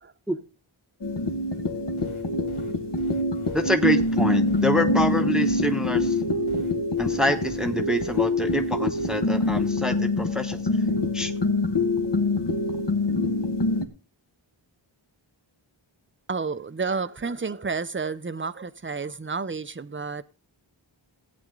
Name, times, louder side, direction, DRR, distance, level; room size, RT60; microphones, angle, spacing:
sound 1, 1.0-13.9, left 2 dB, 60° left, 1.6 m, -25 dB
sound 2, 2.0-9.7, left 2 dB, 85° left, 3.0 m, -44 dB
voice 1, 3.5-6.2 7.0-10.6 11.1-11.3, equal, ahead, 1.1 m, -26 dB
voice 2, 16.3-20.2, right 4 dB, 25° right, 0.7 m, -30 dB
15.5 x 8.7 x 3.8 m
wide cardioid pair, 50°, 48 cm